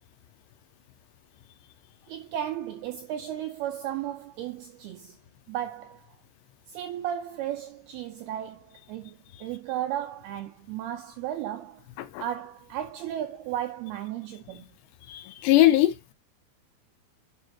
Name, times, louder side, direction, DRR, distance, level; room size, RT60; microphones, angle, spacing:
voice 1, 2.1-5.2 5.5-6.2 6.7-11.8 12.2-14.6, right 11 dB, 90° right, 2.2 m, -34 dB
voice 2, 15.1-15.9, left 15 dB, 80° left, 2.8 m, -21 dB
10.5 x 5.7 x 2.8 m
omnidirectional pair, 5.4 m